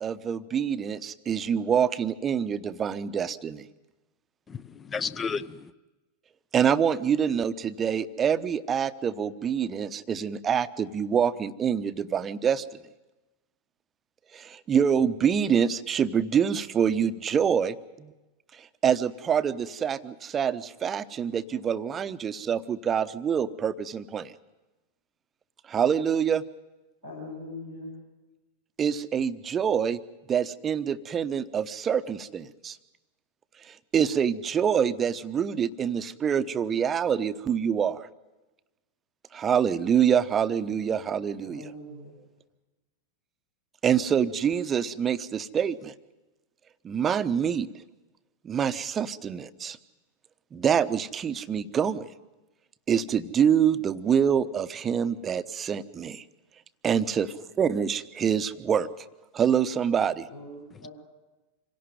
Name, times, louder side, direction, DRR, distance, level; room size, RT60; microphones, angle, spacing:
voice 1, 0.0-3.7 6.5-12.6 14.3-18.1 18.5-24.3 25.7-26.4 28.8-30.0 30.3-32.8 33.6-38.1 39.3-41.6 43.8-45.9 46.8-47.7 48.4-49.8 50.5-52.1 52.9-56.2 56.8-58.9 59.3-60.3, right 8 dB, 25° right, 14 dB, 0.9 m, -26 dB
voice 2, 4.5-5.7 60.7-60.9, left 5 dB, 20° left, 15 dB, 0.8 m, -33 dB
voice 3, 27.0-27.9 41.4-42.2 60.3-60.9, left 2 dB, 85° left, -4 dB, 7.4 m, -41 dB
26.5 x 17.0 x 9.3 m, 1.1 s
figure-of-eight pair, 90°, 0 cm